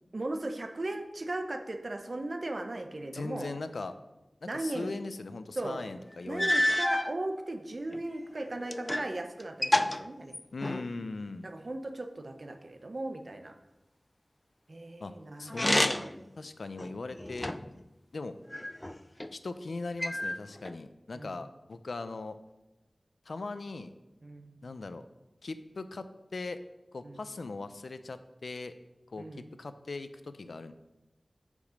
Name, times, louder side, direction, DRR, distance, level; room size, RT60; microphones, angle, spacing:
voice 1, 0.1-3.5 4.4-4.9 5.6-5.8 6.2-10.4 11.4-13.5 14.7-15.5 21.1-21.4 24.2-24.6 27.0-27.3 29.2-29.5, right 2 dB, 55° right, 6 dB, 0.8 m, -37 dB
voice 2, 3.1-3.9 4.4-6.8 10.5-11.5 15.0-16.0 16.4-17.5 18.1-18.4 19.3-22.4 23.3-23.9 24.6-25.1 25.4-26.6 26.9-28.7 29.1-30.7, left 3 dB, 85° left, 11 dB, 0.5 m, -39 dB
sound 1, 5.8-5.9 6.4-7.1 7.9-9.1 9.4-10.9 15.5-16.2 16.8-17.8 18.5-19.3 20.0-20.8, left 1 dB, 20° left, 0.3 m, -29 dB
8.3 x 5.1 x 5.1 m, 0.98 s
wide cardioid pair, 70°, 0 cm